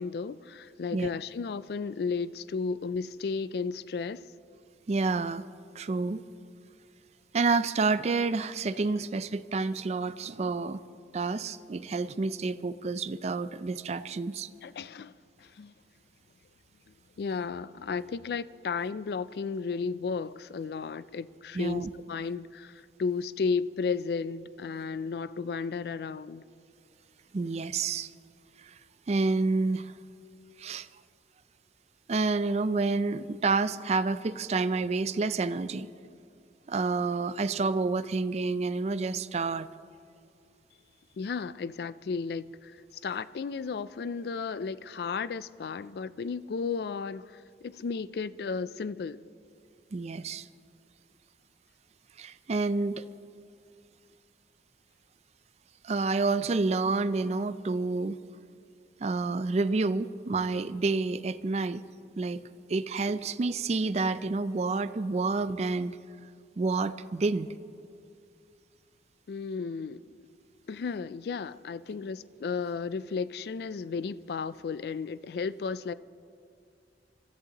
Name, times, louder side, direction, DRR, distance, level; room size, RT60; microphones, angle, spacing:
voice 1, 0.0-4.2 8.7-9.0 14.6-15.1 15.4-15.7 17.2-26.4 41.2-42.7 43.0-49.2 69.3-70.2 70.7-75.9, left 5 dB, 60° left, 0.3 m, -34 dB
voice 2, 4.9-5.4 5.8-6.2 7.3-10.8 11.1-14.5 21.5-21.9 27.3-28.1 28.6-28.8 29.1-29.9 30.6-30.9 32.1-35.9 36.7-39.7 49.9-50.5 52.2-53.1 55.8-58.2 59.0-61.8 62.2-62.4 62.7-66.0 66.6-67.5, right 3 dB, 35° right, 0.4 m, -29 dB
25.0 x 14.0 x 2.9 m
head